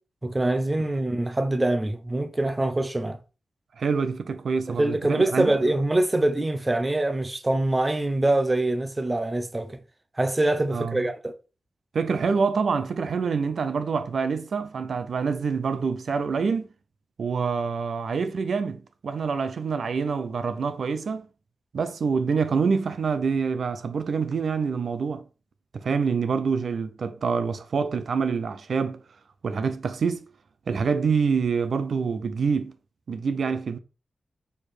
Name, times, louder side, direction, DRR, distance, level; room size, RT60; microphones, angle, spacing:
voice 1, 0.2-3.2 4.7-9.8 10.2-11.3, right 2 dB, 15° right, 0.7 m, -24 dB
voice 2, 3.8-5.5 10.7-11.0 11.9-16.7 17.2-21.3 21.7-25.2 25.7-29.0 29.4-30.3 30.7-32.7 33.1-33.8, right 5 dB, 65° right, 0.6 m, -26 dB
6.8 x 4.9 x 4.2 m
wide cardioid pair, 170°, 0 cm